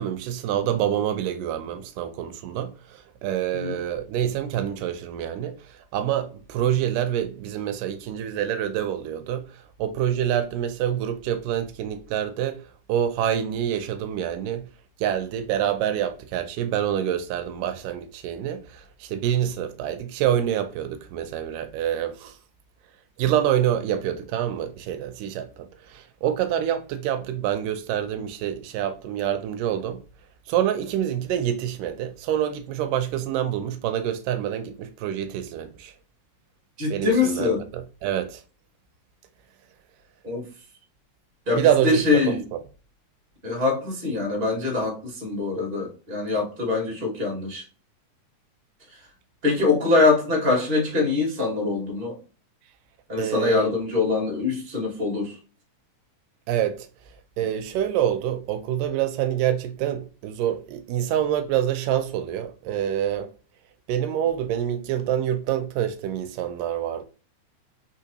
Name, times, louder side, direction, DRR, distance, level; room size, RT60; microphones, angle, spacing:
voice 1, 0.0-12.6 12.9-14.7 15.0-22.4 23.2-30.0 30.5-35.9 36.9-38.4 41.6-42.6 53.2-53.8 56.5-56.9 57.4-63.3 63.9-67.1, right 10 dB, 85° right, 2.2 m, -26 dB
voice 2, 36.8-37.6 40.2-40.4 41.4-42.4 43.4-47.6 49.4-52.2 53.1-55.3, left 3 dB, 25° right, 1.4 m, -23 dB
5.0 x 3.8 x 2.8 m
omnidirectional pair, 3.8 m